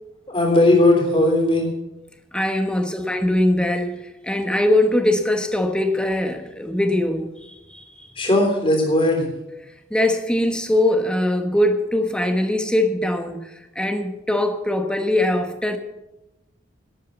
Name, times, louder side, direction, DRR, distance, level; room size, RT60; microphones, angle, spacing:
voice 1, 0.3-1.7 8.1-9.3, left 1 dB, 30° left, 2 dB, 3.4 m, -17 dB
voice 2, 2.3-8.1 9.9-15.8, left 1 dB, 5° left, 6 dB, 1.0 m, -22 dB
12.0 x 8.5 x 7.9 m, 0.97 s
head